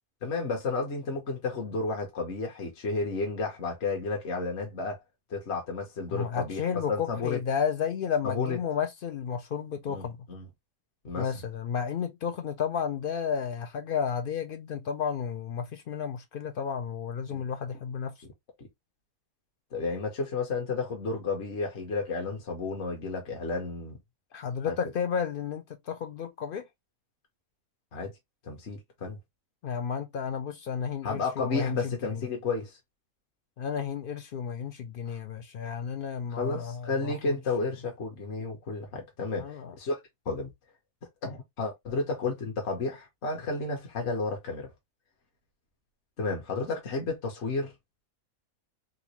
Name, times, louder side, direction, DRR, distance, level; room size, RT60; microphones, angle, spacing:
voice 1, 0.2-5.0 5.3-7.4 8.2-8.6 9.9-10.5 11.0-11.3 17.3-17.4 18.6-18.7 19.7-24.0 24.7-24.8 27.9-28.1 28.4-29.2 31.0-32.8 35.1-35.2 36.3-40.0 40.3-40.5 41.2-44.7 46.2-47.7, left 3 dB, 55° left, 1.1 m, -32 dB
voice 2, 6.1-10.2 11.2-18.1 24.3-26.7 29.6-32.2 33.6-37.4 39.4-39.7, left 7 dB, 90° left, 0.4 m, -32 dB
3.8 x 2.4 x 2.8 m
omnidirectional pair, 1.5 m